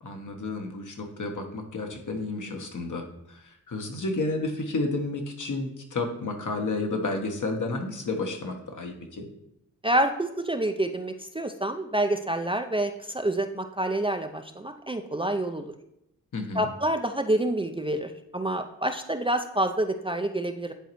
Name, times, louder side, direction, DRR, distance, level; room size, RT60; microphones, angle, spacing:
voice 1, 0.0-9.3 16.3-16.7, left 2 dB, 55° left, 3 dB, 1.2 m, -31 dB
voice 2, 9.8-15.7 16.5-20.7, right 1 dB, 15° right, 6 dB, 0.5 m, -27 dB
10.5 x 3.9 x 3.1 m, 0.81 s
supercardioid pair, 40°, 36 cm